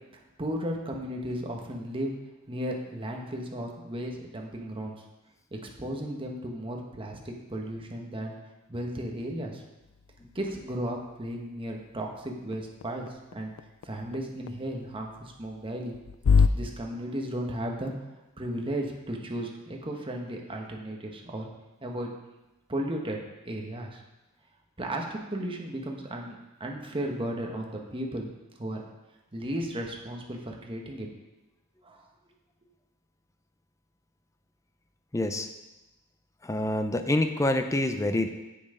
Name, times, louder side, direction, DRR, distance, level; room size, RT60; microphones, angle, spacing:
voice 1, 0.4-2.1 2.5-4.9 5.5-8.3 8.7-9.6 10.3-13.5 13.8-15.9 16.5-17.9 18.4-21.5 21.8-22.1 22.7-23.2 23.4-24.0 24.8-28.3 28.6-28.8 29.3-31.1 31.8-32.1, right 1 dB, 25° right, 1 dB, 1.1 m, -35 dB
sound 1, 9.8-16.5, left 5 dB, 65° left, 0.4 m, -30 dB
voice 2, 35.1-35.5 36.4-38.3, left 1 dB, 15° left, 7 dB, 0.5 m, -26 dB
7.8 x 7.1 x 5.0 m, 1.0 s
head